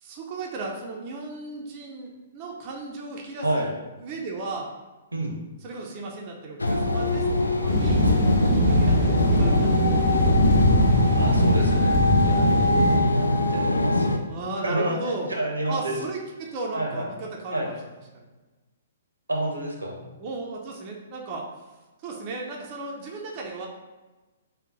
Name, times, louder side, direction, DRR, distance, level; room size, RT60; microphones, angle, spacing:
voice 1, 0.0-3.7 4.0-4.7 5.6-8.1 8.5-10.4 14.2-15.3 15.7-17.8 18.1-18.3 20.0-21.5 22.0-23.7, right 3 dB, 30° right, -1 dB, 0.5 m, -36 dB
voice 2, 3.4-3.7 5.1-5.4 11.1-14.2 14.6-15.0 15.3-15.9 16.7-17.1 17.5-17.7 19.3-19.9, right 1 dB, 80° right, 0 dB, 0.7 m, -29 dB
sound 1, 6.6-14.2, left 1 dB, 80° left, 0.3 m, -23 dB
sound 2, 7.7-13.0, equal, 20° left, 1.0 m, -22 dB
3.7 x 2.2 x 3.6 m, 1.2 s
figure-of-eight pair, 120°, 0 cm